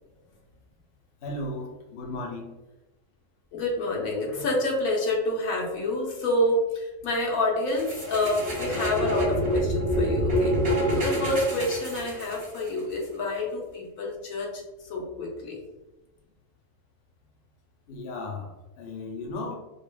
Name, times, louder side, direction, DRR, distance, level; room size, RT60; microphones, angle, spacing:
voice 1, 1.2-2.5 17.9-18.5 18.8-19.6, left 2 dB, 55° left, -1 dB, 0.8 m, -35 dB
voice 2, 3.5-14.6 14.9-15.6, left 1 dB, 80° left, -1 dB, 1.3 m, -28 dB
sound 1, 7.8-12.7, equal, 50° right, 1.6 m, -26 dB
5.2 x 2.4 x 2.3 m, 1.1 s
omnidirectional pair, 1.4 m